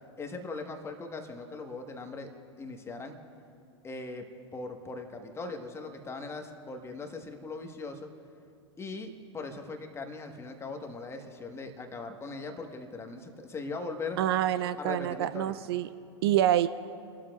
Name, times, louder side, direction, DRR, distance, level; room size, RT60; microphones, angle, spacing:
voice 1, 0.2-2.3 2.6-3.1 3.8-8.1 8.8-14.2 14.8-15.6, left 3 dB, 15° left, 5 dB, 1.3 m, -40 dB
voice 2, 14.2-15.9 16.2-16.7, right 12 dB, 55° right, 14 dB, 0.4 m, -26 dB
29.5 x 12.5 x 2.4 m, 2.5 s
figure-of-eight pair, 100°, 15 cm